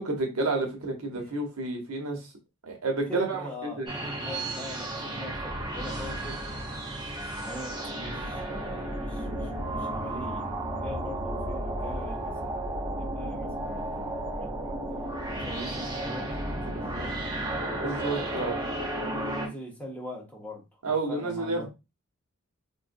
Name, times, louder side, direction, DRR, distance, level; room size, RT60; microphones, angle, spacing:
voice 1, 0.0-2.3 2.6-3.9 17.8-18.5 20.8-21.7, right 3 dB, 75° right, 1.0 m, -30 dB
voice 2, 3.1-6.4 7.1-12.5 12.9-14.8 15.3-17.2 17.8-21.7, left 1 dB, 5° left, 0.9 m, -42 dB
sound 1, 3.9-19.5, right 1 dB, 20° right, 0.8 m, -33 dB
3.5 x 2.5 x 2.6 m
head